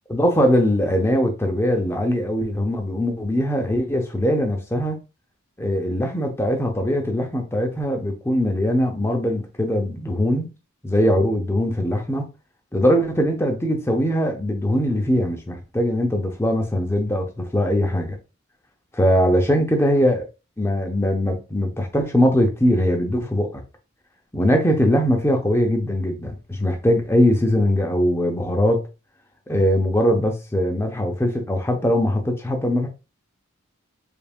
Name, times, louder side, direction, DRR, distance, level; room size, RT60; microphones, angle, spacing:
voice 1, 0.1-5.0 5.6-10.5 10.8-12.3 12.7-18.2 18.9-20.3 20.6-23.6 24.3-28.8 29.5-32.9, equal, 10° left, 0.7 m, -21 dB
4.0 x 3.5 x 2.4 m
head